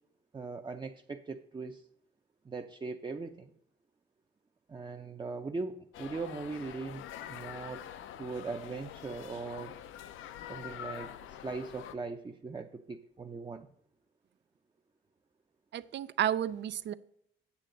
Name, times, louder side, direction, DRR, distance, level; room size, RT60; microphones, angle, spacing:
voice 1, 0.3-1.8 2.4-3.5 4.7-9.8 10.5-13.7, right 4 dB, 25° right, 5 dB, 0.7 m, -40 dB
sound 1, 5.9-11.9, left 10 dB, 80° left, 0.6 m, -45 dB
voice 2, 15.7-16.9, right 10 dB, 65° right, 15 dB, 0.6 m, -31 dB
8.4 x 7.4 x 3.9 m, 0.73 s
cardioid pair, 90°, 20 cm